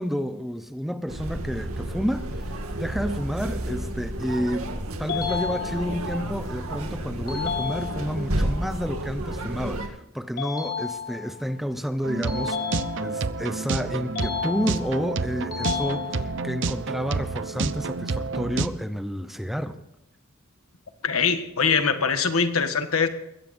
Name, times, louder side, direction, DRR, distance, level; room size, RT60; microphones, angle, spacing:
voice 1, 0.0-4.7 5.0-12.6 13.0-19.8, equal, ahead, 10 dB, 0.7 m, -30 dB
sound 1, 1.1-9.9, right 1 dB, 85° right, 2.0 m, -31 dB
sound 2, 5.1-6.1 7.3-8.3 10.4-11.4 12.3-13.3 14.1-15.1 15.5-16.5, left 7 dB, 45° left, 3.9 m, -32 dB
sound 3, 12.0-18.7, right 4 dB, 60° right, 0.7 m, -29 dB
voice 2, 21.0-23.1, left 5 dB, 80° left, 8 dB, 1.5 m, -23 dB
21.5 x 16.5 x 2.7 m, 0.88 s
head